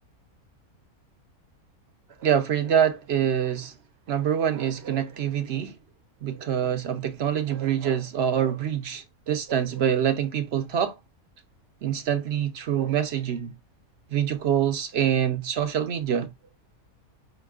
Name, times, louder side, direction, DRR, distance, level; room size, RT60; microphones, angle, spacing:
voice 1, 2.2-3.7 4.1-5.7 6.2-10.9 11.8-13.5 14.1-16.3, right 9 dB, 65° right, 0.7 m, -25 dB
5.3 x 3.0 x 2.3 m
omnidirectional pair, 1.5 m